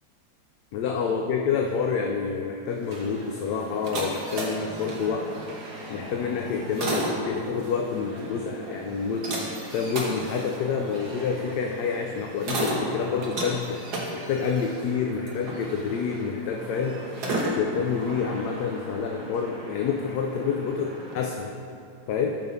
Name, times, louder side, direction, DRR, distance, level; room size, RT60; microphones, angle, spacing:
voice 1, 0.7-5.3 5.9-9.4 9.7-17.0 17.6-21.5 22.1-22.3, left 6 dB, 70° left, 2 dB, 1.1 m, -28 dB
sound 1, 2.7-21.2, right 1 dB, 60° right, 1.7 m, -35 dB
13.5 x 5.3 x 3.5 m, 2.5 s
omnidirectional pair, 2.0 m